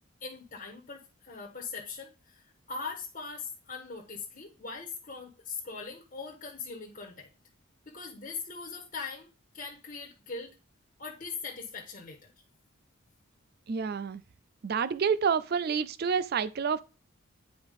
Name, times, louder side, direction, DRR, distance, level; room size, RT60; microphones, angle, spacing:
voice 1, 0.2-7.3 7.8-10.5 11.0-12.3, left 4 dB, 40° left, 1.4 m, -41 dB
voice 2, 13.7-14.2 14.6-16.8, right 6 dB, 50° right, 0.4 m, -28 dB
9.3 x 4.9 x 3.6 m
head